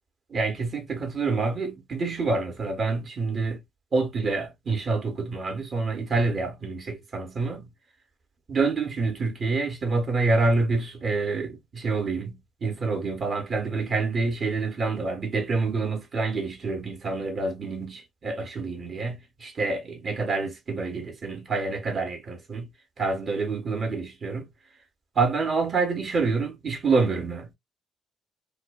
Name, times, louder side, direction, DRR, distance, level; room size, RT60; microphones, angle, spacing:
voice 1, 0.3-3.6 3.9-7.7 8.5-22.7 23.0-24.5 25.1-27.5, right 3 dB, 50° right, 1.1 m, -27 dB
2.5 x 2.2 x 2.3 m
hypercardioid pair, 50°, 0 cm